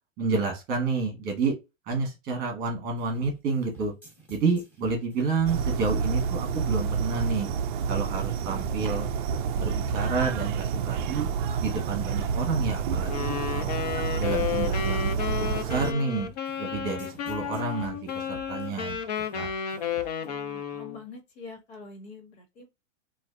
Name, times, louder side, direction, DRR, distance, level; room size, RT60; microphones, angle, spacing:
voice 1, 0.2-1.6 1.9-3.9 4.3-7.5 7.9-9.1 9.6-11.3 11.6-13.7 14.2-16.3 16.6-19.0 19.3-19.5, right 4 dB, 25° right, 1.4 m, -29 dB
sound 1, 3.0-20.3, right 5 dB, 5° left, 1.2 m, -50 dB
sound 2, 5.5-15.9, right 6 dB, 40° right, 0.4 m, -29 dB
Wind instrument woodwind instrument, 13.0-21.0, left 8 dB, 35° left, 0.4 m, -32 dB
voice 2, 20.2-22.7, left 4 dB, 60° left, 1.6 m, -45 dB
4.1 x 2.6 x 2.5 m
supercardioid pair, 160°, 39 cm